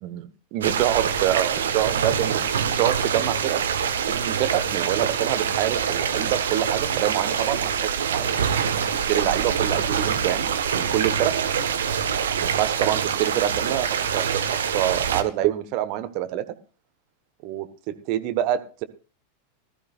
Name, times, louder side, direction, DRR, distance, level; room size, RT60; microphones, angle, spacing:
voice 1, 0.0-3.6 4.1-8.3 9.1-11.3 12.4-16.4 17.4-18.8, right 13 dB, 45° right, 10 dB, 1.3 m, -26 dB
sound 1, 0.6-15.2, right 7 dB, 65° right, 1.4 m, -25 dB
19.5 x 13.0 x 2.5 m, 0.34 s
figure-of-eight pair, 90°, 0 cm